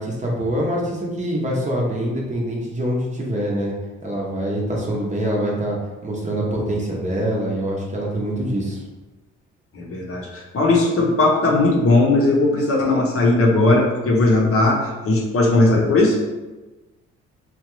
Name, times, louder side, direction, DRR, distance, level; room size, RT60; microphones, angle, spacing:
voice 1, 0.0-3.7 4.0-8.8, right 1 dB, 25° right, -3 dB, 0.7 m, -24 dB
voice 2, 9.7-16.2, left 2 dB, 50° left, -2 dB, 0.7 m, -18 dB
2.8 x 2.3 x 3.0 m, 1.1 s
cardioid pair, 90°, 30 cm